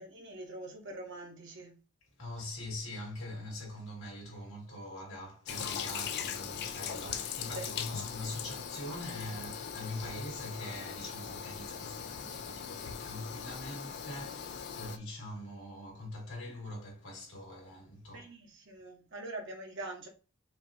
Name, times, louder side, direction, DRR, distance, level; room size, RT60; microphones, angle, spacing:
voice 1, 0.0-1.8 7.5-8.4 13.4-13.5 18.1-20.1, right 2 dB, 55° right, 1.1 m, -44 dB
voice 2, 2.2-18.3, left 1 dB, 75° left, 2.1 m, -43 dB
Toilet flush, 5.5-15.0, left 8 dB, 50° left, 0.3 m, -40 dB
5.1 x 2.1 x 2.8 m
head